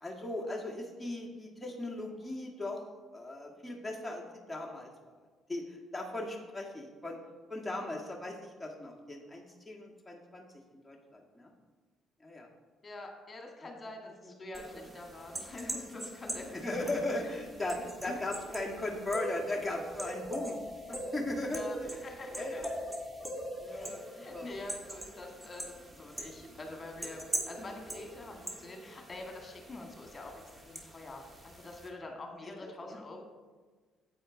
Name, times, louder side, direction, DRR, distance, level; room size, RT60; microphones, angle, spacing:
voice 1, 0.0-2.8 3.1-4.9 5.5-7.2 7.5-10.4 10.8-11.5 12.2-12.5 16.6-20.6 20.9-22.0 22.3-22.7 23.6-24.0 24.3-24.5 32.4-32.7, left 2 dB, 5° left, -2 dB, 1.7 m, -38 dB
voice 2, 12.8-16.9 17.7-18.2 21.5-22.7 23.3-33.3, left 2 dB, 35° left, 2 dB, 1.9 m, -46 dB
sound 1, 14.5-31.9, right 1 dB, 20° right, 1.7 m, -42 dB
9.2 x 8.2 x 3.9 m, 1.4 s
hypercardioid pair, 50°, 0 cm